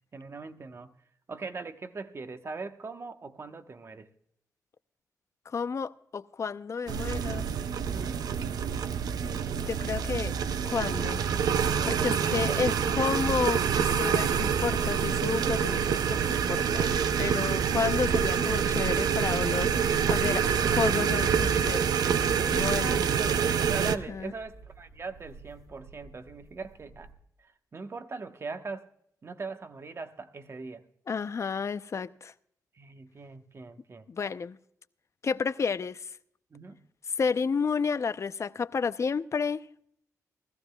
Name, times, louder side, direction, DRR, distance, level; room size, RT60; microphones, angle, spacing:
voice 1, 0.1-0.9 1.3-4.1 7.8-8.2 11.7-12.7 22.4-27.1 27.4-28.9 29.2-30.8 32.7-34.1 36.5-36.8, right 4 dB, 40° right, 1.1 m, -40 dB
voice 2, 5.5-7.5 9.6-10.4 10.6-11.3 11.9-21.9 22.5-23.0 23.8-24.3 31.1-32.3 34.1-34.6 35.2-36.2 37.2-39.7, left 5 dB, 50° left, 0.6 m, -31 dB
sound 1, 6.9-24.0, right 7 dB, 85° right, 0.5 m, -27 dB
sound 2, 7.8-27.1, right 3 dB, 65° right, 2.1 m, -51 dB
20.0 x 14.5 x 2.3 m
cardioid pair, 85°, 6 cm